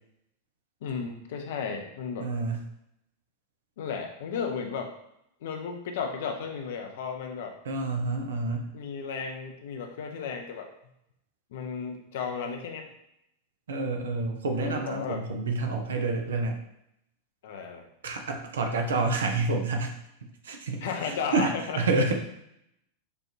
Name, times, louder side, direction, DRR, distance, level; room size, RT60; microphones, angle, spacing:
voice 1, 0.8-2.3 3.8-4.9 5.4-7.6 8.7-10.7 11.5-12.9 14.4-15.2 17.4-17.9 20.8-21.8, left 6 dB, 55° left, 3 dB, 0.7 m, -34 dB
voice 2, 2.2-2.6 7.6-8.7 13.7-16.6 18.0-20.0 20.4-22.2, right 3 dB, 65° right, 4 dB, 0.7 m, -28 dB
6.8 x 2.6 x 2.8 m, 0.79 s
figure-of-eight pair, 90°, 0 cm